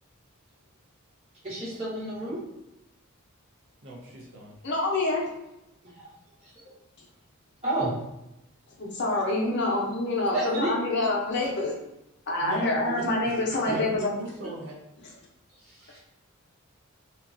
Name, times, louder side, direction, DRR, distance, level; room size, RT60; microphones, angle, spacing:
voice 1, 1.4-2.4 5.9-6.1 6.6-6.7 7.6-7.9 10.3-10.7 13.6-13.7 15.7-16.0, right 2 dB, 30° right, -10 dB, 1.2 m, -31 dB
voice 2, 3.8-4.6 12.4-14.8, right 2 dB, 55° right, -2 dB, 0.5 m, -39 dB
voice 3, 4.6-5.3 8.8-11.7 12.3-14.0, left 2 dB, 50° left, -3 dB, 0.6 m, -26 dB
2.8 x 2.4 x 2.6 m, 0.88 s
head